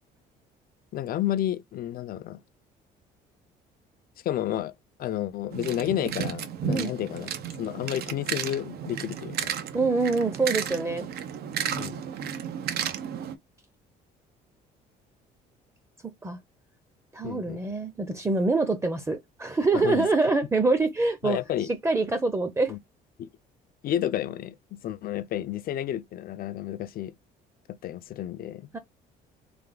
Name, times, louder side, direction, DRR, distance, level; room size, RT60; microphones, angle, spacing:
voice 1, 0.9-2.4 4.2-4.7 5.0-7.3 7.6-9.5 11.8-12.0 17.2-17.6 19.7-20.1 21.2-21.7 22.7-22.8 23.2-23.3 23.8-27.1 27.7-28.7, left 12 dB, 60° left, 0.6 m, -31 dB
sound 1, 5.5-13.3, right 8 dB, 65° right, 0.9 m, -33 dB
voice 2, 9.7-11.1 16.0-16.4 17.1-21.4 21.8-22.8 28.7-28.8, right 3 dB, 15° right, 0.8 m, -25 dB
3.7 x 3.4 x 3.9 m
cardioid pair, 110°, 17 cm